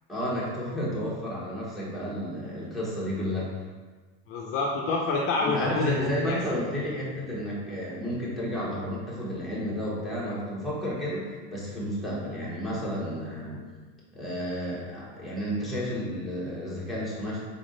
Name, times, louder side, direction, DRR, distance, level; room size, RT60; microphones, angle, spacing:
voice 1, 0.1-3.5 5.4-13.6 14.1-17.4, equal, ahead, -8 dB, 1.3 m, -32 dB
voice 2, 4.3-6.4, left 3 dB, 40° left, -2 dB, 0.5 m, -27 dB
3.9 x 3.5 x 3.8 m, 1.4 s
supercardioid pair, 140°, 33 cm